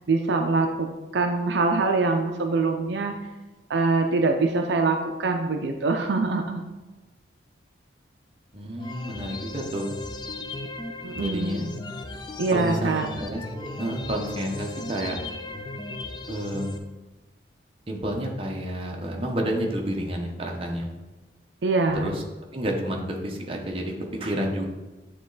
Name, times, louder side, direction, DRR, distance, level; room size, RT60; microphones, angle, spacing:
voice 1, 0.1-3.1 3.7-6.6 11.0-11.7 12.4-13.1 21.6-22.1, right 3 dB, 70° right, 4 dB, 0.5 m, -24 dB
voice 2, 8.5-9.9 11.2-11.7 12.5-15.2 16.3-16.8 17.9-20.9 22.0-22.2 22.5-23.9 24.2-24.7, equal, 30° right, 0 dB, 0.9 m, -30 dB
sound 1, 8.8-16.8, left 2 dB, 25° left, 0.4 m, -37 dB
9.0 x 3.1 x 3.9 m, 1.1 s
head